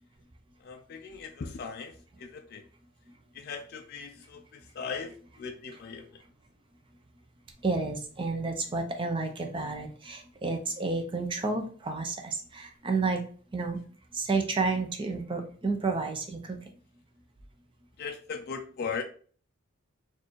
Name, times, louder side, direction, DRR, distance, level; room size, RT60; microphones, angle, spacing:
voice 1, 0.6-2.6 3.3-6.2 18.0-19.0, left 5 dB, 45° left, 4 dB, 0.3 m, -39 dB
voice 2, 7.6-13.2 13.5-13.8 14.1-16.6, right 3 dB, 25° right, 4 dB, 0.5 m, -30 dB
4.3 x 2.5 x 3.0 m, 0.44 s
head